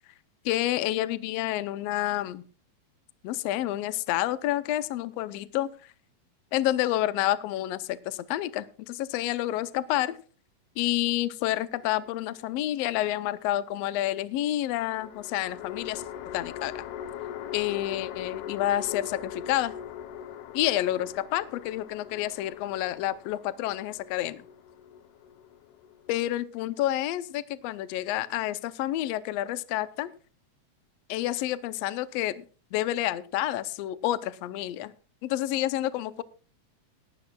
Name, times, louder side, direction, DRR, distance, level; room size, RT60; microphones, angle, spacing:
voice 1, 0.4-2.4 3.2-5.7 6.5-10.2 10.8-16.0 16.3-16.8 17.5-19.7 20.5-24.4 26.1-30.1 31.1-32.4 32.7-34.9 35.2-36.2, left 14 dB, 75° left, 15 dB, 1.6 m, -29 dB
sound 1, 11.8-12.7 14.9-26.3, left 9 dB, 90° left, 2.3 m, -41 dB
18.0 x 12.5 x 2.3 m, 0.38 s
omnidirectional pair, 3.4 m